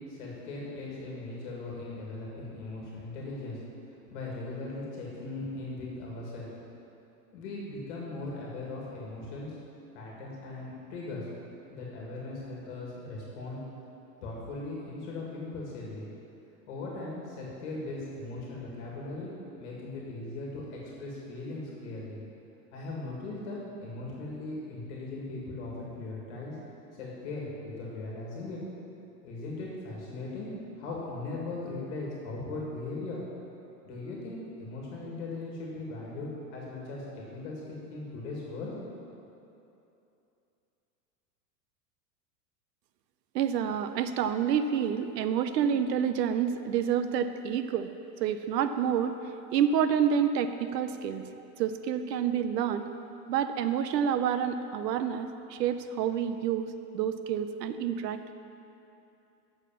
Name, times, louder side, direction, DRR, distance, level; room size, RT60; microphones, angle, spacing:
voice 1, 0.0-3.6 4.1-6.5 7.3-9.6 9.9-11.3 11.7-13.6 14.2-16.0 16.7-22.2 22.7-26.6 27.0-28.6 29.2-33.2 33.8-38.7, left 2 dB, 45° left, -4 dB, 2.0 m, -39 dB
voice 2, 43.3-47.9 48.2-49.2 49.5-51.2 51.6-52.9 53.3-58.3, right 8 dB, 85° right, 10 dB, 0.7 m, -28 dB
8.3 x 6.5 x 7.2 m, 2.8 s
supercardioid pair, 175°, 48 cm